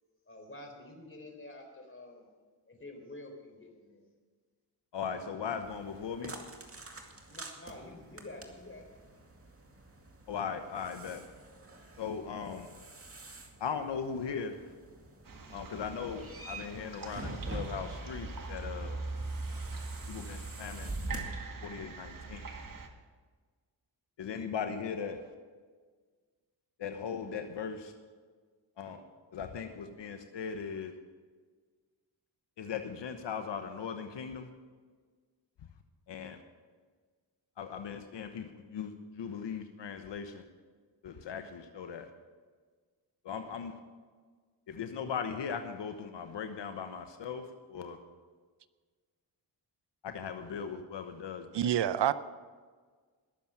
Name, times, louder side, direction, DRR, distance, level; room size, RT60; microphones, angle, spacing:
voice 1, 0.3-2.3 2.7-4.0 7.2-8.9, left 2 dB, 30° left, 3 dB, 3.9 m, -48 dB
voice 2, 4.9-6.4 10.3-11.2 12.0-12.7 13.6-14.6 15.5-19.0 20.1-21.2 21.6-22.4 24.2-25.3 26.8-27.9 28.8-29.0 29.3-30.9 32.6-34.5 36.1-36.4 37.6-40.4 41.0-42.1 43.2-43.8 44.7-48.0 50.0-51.5, left 6 dB, 70° left, 7 dB, 1.1 m, -38 dB
sound 1, 5.6-21.2, right 2 dB, 30° right, 2.2 m, -46 dB
sound 2, 15.3-22.9, right 3 dB, 45° right, 1.8 m, -42 dB
voice 3, 51.5-52.1, right 10 dB, 65° right, 15 dB, 0.7 m, -27 dB
20.5 x 7.2 x 5.9 m, 1.5 s
cardioid pair, 65°, 45 cm